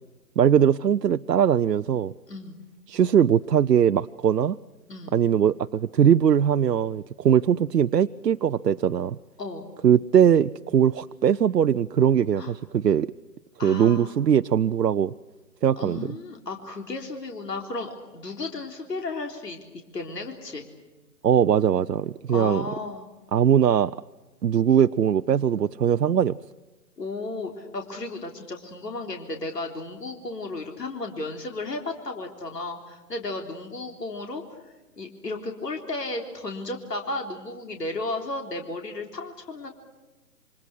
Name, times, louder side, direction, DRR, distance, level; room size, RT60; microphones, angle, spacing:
voice 1, 0.4-2.1 2.9-4.6 5.1-9.2 9.8-13.1 13.6-15.1 15.6-16.1 21.2-22.7 23.3-23.9 24.4-26.4, right 9 dB, 90° right, 11 dB, 0.7 m, -21 dB
voice 2, 2.3-2.6 4.9-5.2 9.4-9.7 12.4-12.5 13.6-14.2 15.8-19.6 19.9-20.7 22.3-23.1 27.0-34.4 35.0-39.7, left 2 dB, 80° left, 3 dB, 3.8 m, -34 dB
28.0 x 25.0 x 6.2 m, 1.2 s
hypercardioid pair, 150°, 48 cm